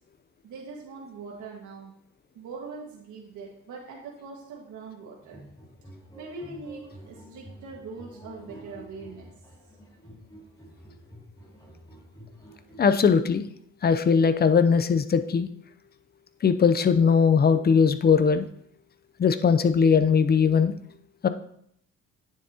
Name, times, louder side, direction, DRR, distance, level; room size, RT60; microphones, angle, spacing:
voice 1, 0.4-1.9 2.4-5.4 6.1-9.3, right 4 dB, 75° right, -3 dB, 1.7 m, -42 dB
sound 1, 5.2-12.9, right 1 dB, 15° left, 2.4 m, -49 dB
voice 2, 12.8-13.5 13.8-15.5 16.4-18.5 19.2-20.7 21.2-21.3, left 6 dB, 30° left, 11 dB, 0.6 m, -20 dB
9.4 x 7.1 x 2.8 m, 0.70 s
cardioid pair, 90°, 30 cm